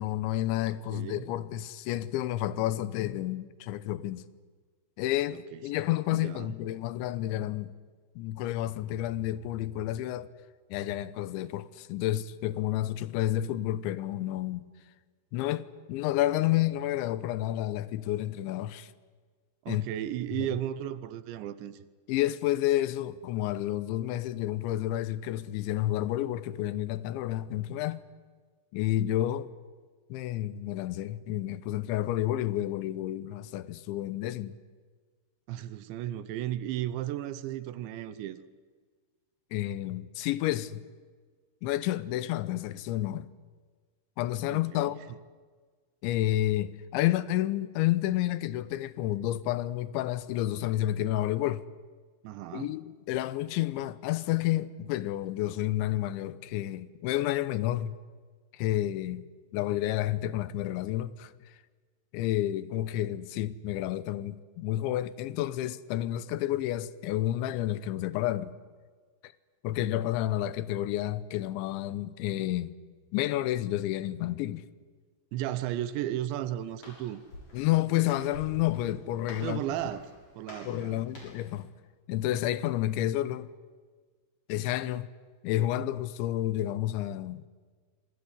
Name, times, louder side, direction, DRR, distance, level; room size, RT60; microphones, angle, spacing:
voice 1, 0.0-4.2 5.0-7.7 8.2-10.3 10.7-14.6 15.3-18.9 19.7-19.9 20.4-20.5 22.1-28.0 28.7-29.5 30.1-34.5 39.5-40.8 41.6-43.3 44.2-45.0 46.0-51.6 52.5-58.0 58.5-59.2 59.5-61.3 62.1-68.5 69.2-69.3 69.6-72.7 73.1-74.6 77.5-79.6 80.6-81.7 82.1-83.5 84.5-85.1 85.4-87.4, left 14 dB, 80° left, 3.2 m, -30 dB
voice 2, 0.7-1.3 5.3-5.6 6.1-6.5 19.7-21.8 35.5-38.4 44.5-44.9 52.2-52.7 75.3-77.2 79.4-81.0, right 12 dB, 80° right, 3.1 m, -35 dB
Walk footsteps, 76.2-81.5, left 1 dB, 35° left, 8.0 m, -50 dB
26.5 x 21.0 x 9.7 m
omnidirectional pair, 5.4 m